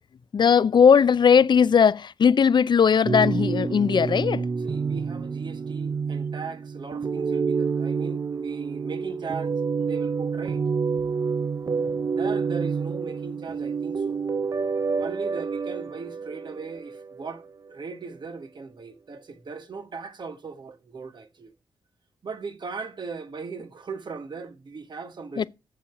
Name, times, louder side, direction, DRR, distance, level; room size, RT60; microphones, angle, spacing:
voice 1, 0.3-4.5 25.4-25.5, left 7 dB, 55° left, 0.5 m, -18 dB
sound 1, 3.0-17.4 17.7-17.8, right 5 dB, 40° right, 0.4 m, -28 dB
voice 2, 4.6-10.6 12.2-14.2 14.9-21.5 22.2-25.5, right 4 dB, 55° right, 1.4 m, -38 dB
7.1 x 7.0 x 5.8 m
cardioid pair, 50°, 9 cm